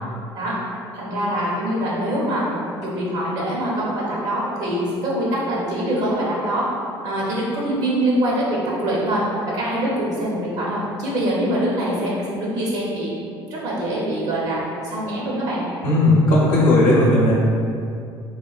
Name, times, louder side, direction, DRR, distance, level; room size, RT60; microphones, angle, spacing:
voice 1, 0.9-2.5 2.8-6.7 7.0-13.1 13.5-14.6 14.9-15.7, right 1 dB, 65° right, -5 dB, 0.7 m, -24 dB
voice 2, 15.8-17.3, left 1 dB, 65° left, -7 dB, 0.6 m, -15 dB
3.0 x 2.2 x 2.3 m, 2.4 s
hypercardioid pair, 60°, 13 cm